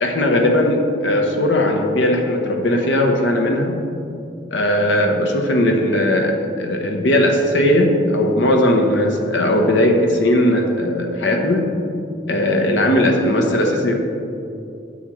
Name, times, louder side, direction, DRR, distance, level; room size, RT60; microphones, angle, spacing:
voice 1, 0.0-3.7 4.5-11.8 12.3-14.0, left 1 dB, 75° left, 3 dB, 1.0 m, -18 dB
9.7 x 7.2 x 3.2 m, 2.6 s
head